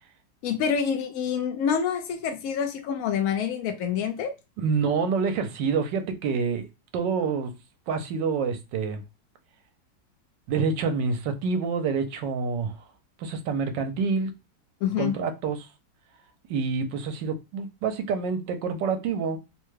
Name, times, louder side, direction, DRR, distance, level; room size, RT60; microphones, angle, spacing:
voice 1, 0.4-4.3 14.8-15.1, left 7 dB, 75° left, 0.8 m, -27 dB
voice 2, 4.6-6.7 6.9-7.5 7.9-9.0 10.5-12.8 13.2-14.3 15.0-15.7 16.5-19.4, right 5 dB, 75° right, 1.3 m, -27 dB
3.5 x 2.1 x 3.1 m
omnidirectional pair, 2.0 m